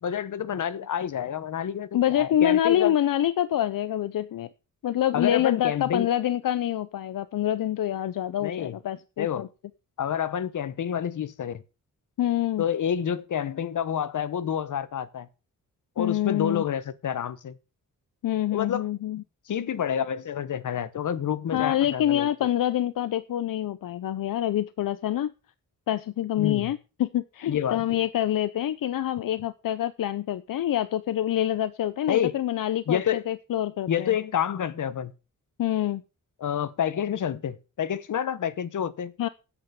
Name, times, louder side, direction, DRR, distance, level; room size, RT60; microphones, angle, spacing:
voice 1, 0.0-2.9 5.1-6.1 8.4-8.7 9.2-9.5 10.0-11.6 12.6-15.3 16.0-17.6 18.5-18.9 19.5-22.3 26.4-26.7 27.5-28.0 32.1-32.3 32.9-33.2 33.9-35.1 36.4-39.3, left 9 dB, 65° left, 1.1 m, -28 dB
voice 2, 1.9-4.5 4.8-9.5 12.2-12.6 16.0-16.6 18.2-19.2 21.5-25.3 25.9-34.2 35.6-36.0 39.2-39.3, left 11 dB, 80° left, 0.7 m, -26 dB
9.9 x 8.2 x 6.9 m
wide cardioid pair, 160°, 33 cm